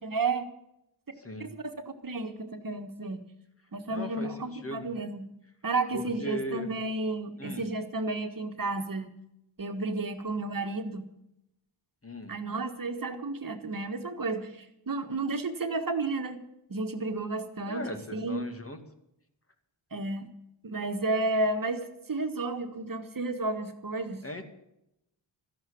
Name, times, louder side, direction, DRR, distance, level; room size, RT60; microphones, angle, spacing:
voice 1, 0.0-0.5 1.4-1.7 2.0-3.2 3.7-5.3 5.6-9.1 9.6-11.1 12.3-16.4 16.7-18.4 19.9-20.3 20.6-24.2, right 3 dB, 45° right, 6 dB, 1.6 m, -32 dB
voice 2, 1.2-1.5 3.9-4.9 5.9-6.7 7.4-7.6 12.0-12.3 17.7-18.8 24.2-24.5, equal, 30° left, 6 dB, 2.2 m, -38 dB
13.5 x 11.0 x 8.6 m, 0.82 s
wide cardioid pair, 85°, 46 cm